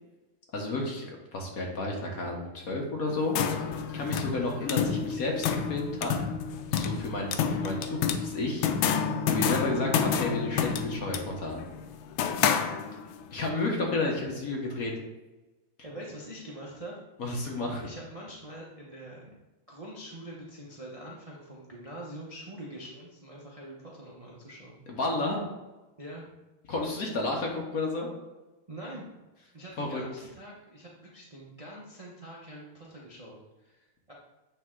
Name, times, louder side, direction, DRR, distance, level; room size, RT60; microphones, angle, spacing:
voice 1, 0.5-3.3 3.6-6.1 6.7-11.6 13.3-14.9 17.2-17.8 24.9-25.4 26.7-28.1 29.8-30.0, left 2 dB, 50° left, 0 dB, 1.2 m, -31 dB
sound 1, 3.1-13.2, left 7 dB, 75° left, 1.3 m, -29 dB
voice 2, 15.8-17.0 17.8-19.3 19.7-24.8 26.0-26.3 28.7-29.1 29.5-34.1, right 1 dB, 60° right, -4 dB, 0.3 m, -44 dB
8.8 x 3.5 x 3.7 m, 1.1 s
omnidirectional pair, 2.3 m